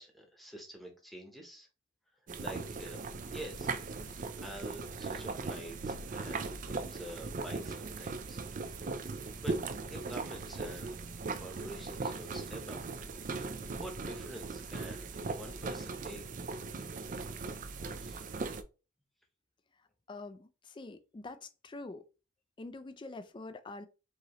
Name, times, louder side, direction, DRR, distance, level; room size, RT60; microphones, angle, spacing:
voice 1, 0.0-1.7 2.4-3.0 3.3-3.7 4.4-8.4 9.4-9.6 9.9-11.0 11.4-12.8 13.4-16.2 18.0-18.2, equal, ahead, 1.0 m, -47 dB
sound 1, 2.3-18.6, right 3 dB, 40° right, 0.4 m, -39 dB
voice 2, 20.1-22.0 22.6-23.9, left 2 dB, 25° left, 0.4 m, -45 dB
4.7 x 3.0 x 3.0 m
head